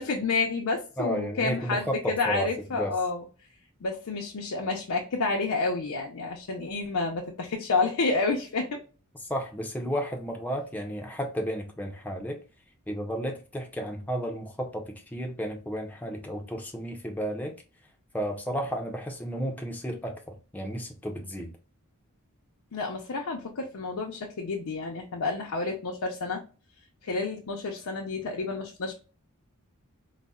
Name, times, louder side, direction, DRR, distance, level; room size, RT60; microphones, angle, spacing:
voice 1, 0.0-3.2 3.8-8.8 22.7-26.4 27.0-28.9, left 3 dB, 80° left, 0.5 m, -29 dB
voice 2, 1.0-2.9 9.3-12.4 12.9-17.6 18.1-21.5, equal, 5° left, 0.5 m, -33 dB
3.9 x 2.0 x 2.2 m
head